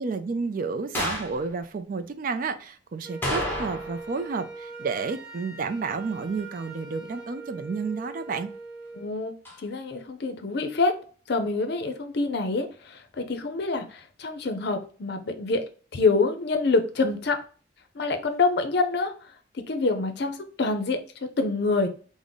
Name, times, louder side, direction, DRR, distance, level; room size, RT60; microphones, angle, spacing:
voice 1, 0.0-8.5, right 4 dB, 45° right, 0.4 m, -31 dB
sound 1, 0.9-1.4 3.2-4.1 4.3-4.4 9.4-9.6, left 1 dB, 10° left, 0.8 m, -30 dB
Wind instrument woodwind instrument, 3.0-9.1, right 3 dB, 5° right, 1.1 m, -42 dB
voice 2, 9.0-9.3 9.6-11.0 11.3-15.6 15.9-17.4 18.0-19.1 19.6-21.9, left 3 dB, 60° left, 0.5 m, -26 dB
3.6 x 2.1 x 3.7 m
head